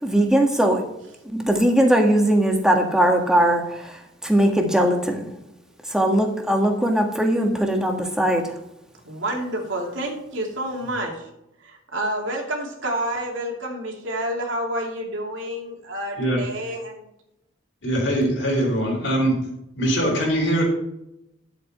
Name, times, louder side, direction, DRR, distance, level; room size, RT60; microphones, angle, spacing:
voice 1, 0.0-0.9 1.2-5.3 5.9-8.5, right 1 dB, 5° right, 2 dB, 1.7 m, -20 dB
voice 2, 9.0-11.3 11.6-17.1, right 1 dB, 85° right, 0 dB, 2.8 m, -29 dB
voice 3, 17.8-19.4 19.7-20.6, right 1 dB, 70° left, -1 dB, 4.5 m, -22 dB
11.0 x 8.1 x 4.3 m, 0.82 s
head